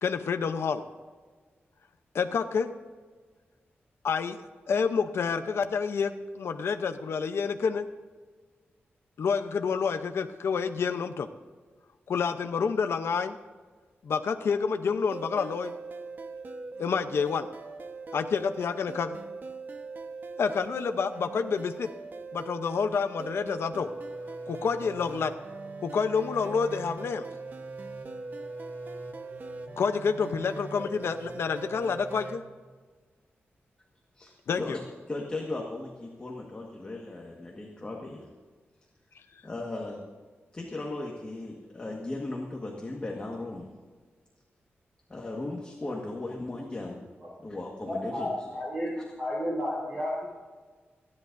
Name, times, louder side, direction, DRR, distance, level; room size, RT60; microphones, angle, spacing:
voice 1, 0.0-0.8 2.1-2.7 4.0-4.4 4.7-7.8 9.2-11.3 12.1-13.4 14.0-15.7 16.8-17.5 18.1-19.2 20.4-21.9 22.3-23.9 24.5-25.3 25.8-27.3 29.8-32.4 34.5-34.8, left 5 dB, 80° left, 7 dB, 0.7 m, -28 dB
sound 1, 15.1-32.4, right 3 dB, 50° right, 1.1 m, -40 dB
voice 2, 34.2-38.2 39.4-40.0 40.5-43.7 45.1-47.1 47.4-48.5, left 2 dB, 25° left, -1 dB, 1.6 m, -37 dB
voice 3, 47.9-50.3, left 1 dB, 25° right, -6 dB, 4.2 m, -32 dB
30.0 x 11.0 x 2.6 m, 1.4 s
wide cardioid pair, 150°, 4 cm